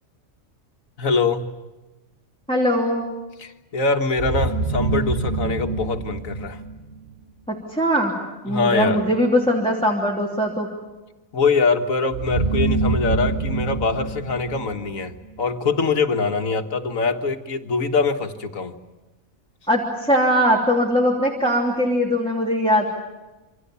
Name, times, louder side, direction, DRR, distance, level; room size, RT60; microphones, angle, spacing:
voice 1, 1.0-1.5 3.4-6.6 8.5-9.0 11.3-18.7, left 4 dB, 75° left, 6 dB, 2.0 m, -23 dB
voice 2, 2.5-3.0 7.5-8.1 8.4-10.7 19.7-22.9, equal, 5° left, -1 dB, 3.1 m, -20 dB
sound 1, 4.2-7.1 12.1-15.3, right 3 dB, 60° right, 2.1 m, -25 dB
28.0 x 25.5 x 7.1 m, 1.1 s
omnidirectional pair, 1.4 m